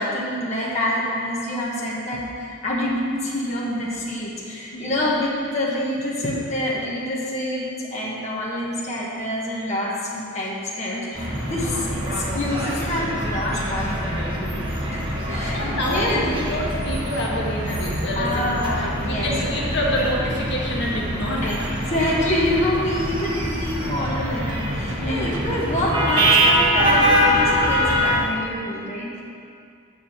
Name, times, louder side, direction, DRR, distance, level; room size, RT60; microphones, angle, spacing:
voice 1, 0.0-14.6 14.9-16.3 18.1-19.3 21.4-29.2, left 1 dB, 35° left, -6 dB, 1.4 m, -27 dB
voice 2, 4.7-5.1 11.6-11.9 15.4-21.5 24.9-25.4, left 1 dB, 60° left, -4 dB, 1.4 m, -27 dB
sound 1, 11.1-28.2, equal, 25° right, 1.3 m, -24 dB
sound 2, 21.4-25.9 26.2-26.3 26.6-26.9 27.2-27.3, right 2 dB, 75° right, 0.9 m, -41 dB
8.2 x 4.8 x 7.3 m, 2.4 s
head